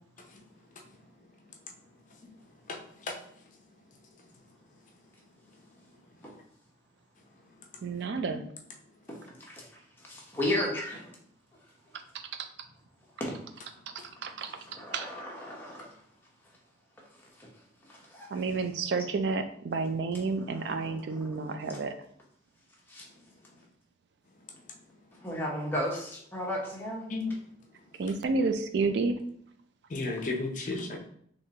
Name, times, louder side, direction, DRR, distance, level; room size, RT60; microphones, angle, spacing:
voice 1, 2.7-3.2 27.1-27.4 29.9-31.0, left 3 dB, 40° left, 2 dB, 0.5 m, -33 dB
voice 2, 7.8-8.4 12.4-12.5 14.2-14.5 14.9-15.1 18.3-21.9 28.0-29.2, right 4 dB, 65° right, 9 dB, 0.3 m, -30 dB
voice 3, 9.1-9.6 10.1-11.1 13.2-13.3 14.7-15.9 17.4-17.5 17.9-18.3 20.5-21.7 22.9-23.0 25.2-27.1, left 1 dB, 10° left, -3 dB, 0.8 m, -35 dB
3.6 x 3.0 x 2.8 m, 0.66 s
head